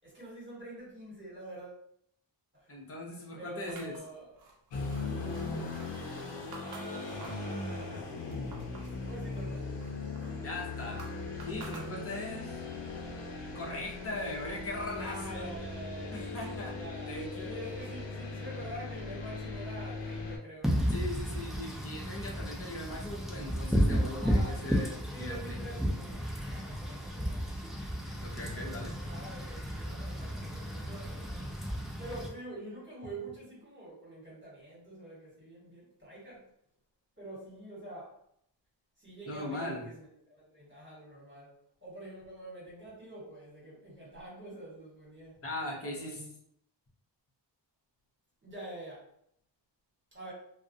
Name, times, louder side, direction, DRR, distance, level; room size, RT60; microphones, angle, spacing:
voice 1, 0.0-1.8 2.5-2.7 3.4-4.3 6.5-8.2 9.0-9.7 14.9-16.3 16.7-17.2 17.4-20.9 22.2-22.4 24.2-26.2 26.5-27.6 28.3-31.4 32.0-36.5 37.2-38.2 39.0-45.4 45.8-46.1 48.4-49.0 50.1-50.3, right 1 dB, 25° right, -7 dB, 1.3 m, -46 dB
voice 2, 2.7-4.0 10.4-11.1 11.4-12.6 13.5-15.5 16.1-16.8 17.1-17.5 20.9-25.8 28.2-28.9 29.2-29.3 39.3-39.8 45.4-46.3, left 1 dB, 30° left, -2 dB, 0.7 m, -40 dB
sound 1, 3.7-7.5 7.9-9.0 9.4-12.4, right 3 dB, 60° right, 0.5 m, -51 dB
sound 2, 4.7-20.4, left 3 dB, 80° left, 0.6 m, -39 dB
Wind / Rain, 20.6-32.3, equal, ahead, 0.3 m, -33 dB
2.3 x 2.0 x 2.6 m, 0.72 s
wide cardioid pair, 90°, 44 cm